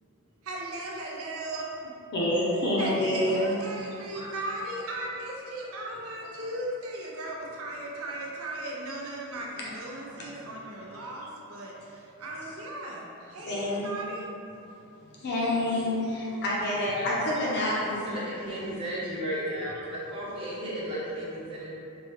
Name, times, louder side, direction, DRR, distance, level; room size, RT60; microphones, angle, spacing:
voice 1, 0.4-1.9 2.8-14.3, right 1 dB, 70° right, -2 dB, 0.5 m, -37 dB
voice 2, 2.1-3.5 6.2-6.3 10.1-10.3 13.4-13.9 15.2-17.8, left 1 dB, 50° left, -5 dB, 0.6 m, -27 dB
voice 3, 17.0-17.4 17.7-21.7, equal, 25° right, -9 dB, 0.7 m, -35 dB
3.3 x 2.2 x 3.1 m, 2.7 s
head